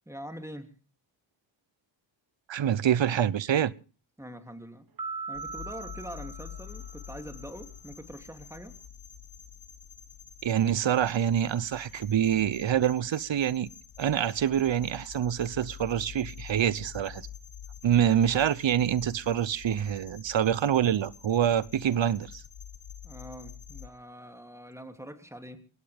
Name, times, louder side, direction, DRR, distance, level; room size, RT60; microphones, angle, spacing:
voice 1, 0.1-0.7 4.2-4.9 5.3-8.7 23.0-25.7, equal, 5° right, 3.0 m, -44 dB
voice 2, 2.5-3.7 10.4-13.7 14.0-17.3 17.8-22.4, right 9 dB, 65° right, 0.9 m, -26 dB
sound 1, 5.0-7.5, right 4 dB, 45° right, 1.7 m, -40 dB
sound 2, 5.3-23.9, left 9 dB, 75° left, 1.5 m, -47 dB
22.5 x 17.5 x 3.5 m
cardioid pair, 55°, 47 cm